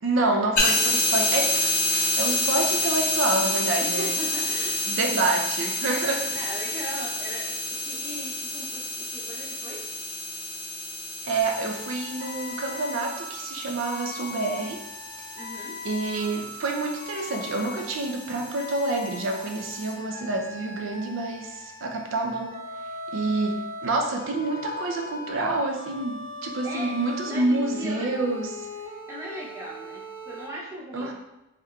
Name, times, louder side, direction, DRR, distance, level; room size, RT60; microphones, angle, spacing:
voice 1, 0.0-4.1 4.9-6.4 11.2-14.9 15.8-22.6 23.1-28.7 30.9-31.1, right 2 dB, 65° right, 2 dB, 0.4 m, -28 dB
sound 1, 0.6-19.9, left 1 dB, 40° left, 0.8 m, -29 dB
voice 2, 3.8-5.4 6.3-9.9 15.4-15.9 26.6-28.1 29.1-31.1, equal, 15° right, -6 dB, 0.6 m, -38 dB
sound 2, 11.4-30.5, left 2 dB, 35° right, 1.0 m, -40 dB
3.5 x 3.0 x 2.2 m, 0.97 s
head